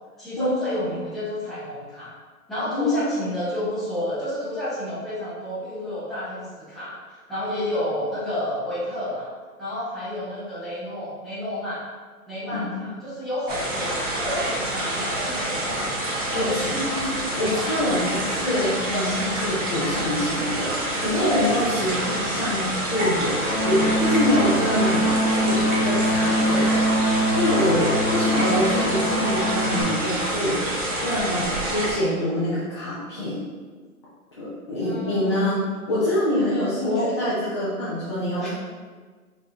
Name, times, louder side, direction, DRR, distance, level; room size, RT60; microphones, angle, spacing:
voice 1, 0.2-2.1 2.5-9.3 9.6-11.8 12.3-15.8 16.0-16.8 21.2-21.6 22.1-22.3 25.0-25.5 28.2-28.5 34.8-35.6 36.8-37.1 38.4-38.5, left 1 dB, ahead, -13 dB, 0.8 m, -30 dB
voice 2, 12.5-12.9 16.3-17.1 17.4-25.1 25.4-26.8 27.3-30.6 31.0-33.4 34.4-35.6 35.9-38.5, left 1 dB, 20° left, -10 dB, 0.4 m, -25 dB
sound 1, 13.5-31.9, right 1 dB, 55° right, 1.2 m, -27 dB
sound 2, 23.4-29.8, equal, 45° left, 1.2 m, -23 dB
3.6 x 2.6 x 3.0 m, 1.5 s
hypercardioid pair, 140°, 44 cm